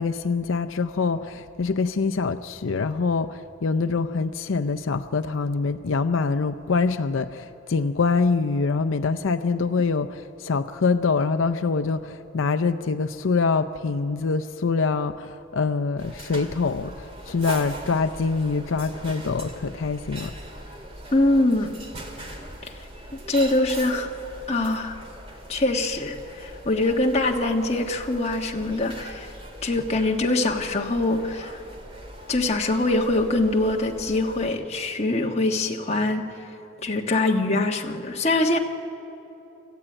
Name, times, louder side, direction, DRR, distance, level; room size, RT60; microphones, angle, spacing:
voice 1, 0.0-20.3, left 4 dB, 85° left, 8 dB, 0.5 m, -25 dB
sound 1, 16.0-34.5, right 1 dB, 30° right, 2.1 m, -41 dB
voice 2, 21.1-21.7 22.6-22.7 23.3-24.1 24.5-25.0 25.5-29.3 29.6-31.6 32.3-36.3 36.8-38.6, left 2 dB, 35° left, 2 dB, 1.4 m, -23 dB
27.0 x 14.5 x 8.9 m, 3.0 s
head